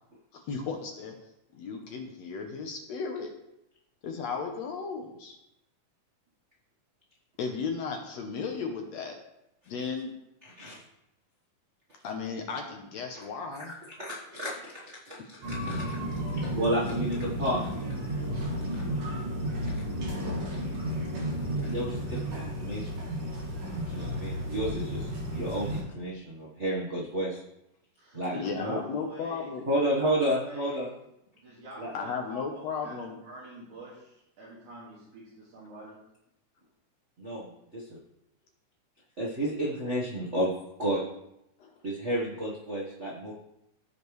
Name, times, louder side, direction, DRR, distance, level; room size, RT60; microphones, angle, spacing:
voice 1, 0.3-1.1 1.5-3.3 4.0-5.4 7.4-9.2 9.7-10.1 12.0-13.7 28.3-29.7 31.9-33.2 41.6-41.8, left 5 dB, 70° left, 3 dB, 1.8 m, -35 dB
voice 2, 10.4-10.8 14.0-16.0 16.3-17.6 21.6-23.0 23.9-27.4 28.1-28.8 29.7-30.9 31.8-31.9 37.2-38.0 39.2-40.5 40.8-41.0 41.8-43.3, right 1 dB, 85° right, -5 dB, 0.6 m, -31 dB
sound 1, 15.4-25.8, equal, 50° right, 2.7 m, -33 dB
voice 3, 28.0-30.9 31.4-33.0 33.2-36.0, right 1 dB, 70° right, -8 dB, 3.4 m, -46 dB
15.0 x 5.1 x 3.1 m, 0.83 s
omnidirectional pair, 3.7 m